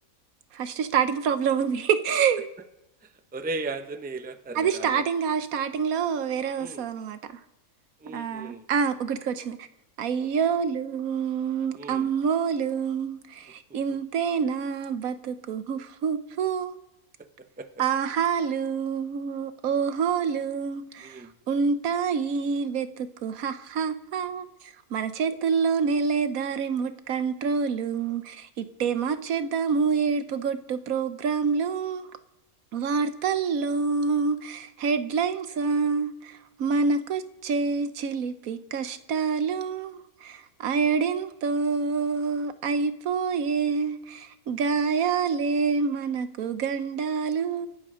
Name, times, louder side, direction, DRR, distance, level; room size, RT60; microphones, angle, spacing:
voice 1, 0.5-2.5 4.5-7.4 8.1-9.7 10.0-16.8 17.8-32.1 32.7-47.7, right 6 dB, 75° right, 11 dB, 1.3 m, -27 dB
voice 2, 3.3-5.0 6.6-6.9 8.0-8.6 11.7-12.0 17.6-17.7 21.0-21.3, right 3 dB, 10° right, 8 dB, 0.5 m, -36 dB
26.0 x 12.0 x 3.7 m, 0.89 s
omnidirectional pair, 1.5 m